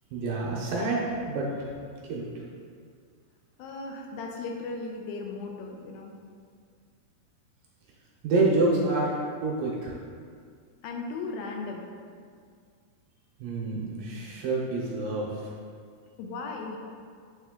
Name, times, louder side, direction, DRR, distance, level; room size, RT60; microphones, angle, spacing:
voice 1, 0.1-1.0 1.3-1.5 2.1-2.2 8.2-9.1 9.4-9.9 13.4-15.3, right 3 dB, 75° right, -3 dB, 2.2 m, -27 dB
voice 2, 3.6-6.2 10.8-11.9 16.2-16.8, left 3 dB, 80° left, 1 dB, 2.3 m, -36 dB
9.3 x 3.3 x 3.6 m, 2.1 s
omnidirectional pair, 4.5 m